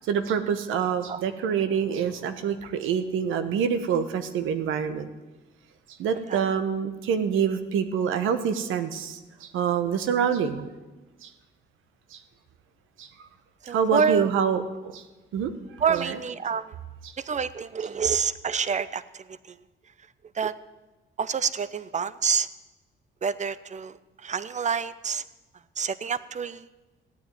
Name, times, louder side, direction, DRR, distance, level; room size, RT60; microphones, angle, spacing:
voice 1, 0.1-5.1 6.0-10.7 11.2-11.3 12.1-12.2 13.0-13.1 13.7-15.0 15.3-15.5 15.9-16.2 17.0-17.1, right 7 dB, 85° right, 10 dB, 1.3 m, -26 dB
voice 2, 13.6-14.3 15.8-16.7 17.2-19.6 20.3-20.5 21.2-22.5 23.2-24.0 24.2-25.2 25.8-26.6, right 6 dB, 35° right, 16 dB, 0.8 m, -27 dB
16.0 x 9.4 x 9.2 m, 1.2 s
cardioid pair, 90°, 20 cm